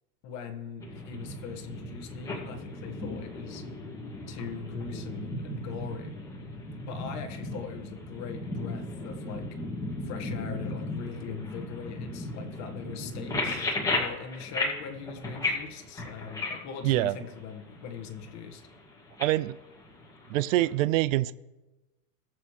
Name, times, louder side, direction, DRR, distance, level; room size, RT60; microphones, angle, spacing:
voice 1, 0.2-3.6 4.3-6.2 6.8-9.5 10.0-18.6, left 6 dB, 35° left, 4 dB, 1.6 m, -41 dB
sound 1, 0.8-20.7, left 2 dB, 5° left, 2.2 m, -36 dB
voice 2, 16.8-17.2 19.2-19.6 20.3-21.3, right 16 dB, 60° right, 16 dB, 0.5 m, -25 dB
19.5 x 7.5 x 3.3 m, 1.1 s
supercardioid pair, 140°, 46 cm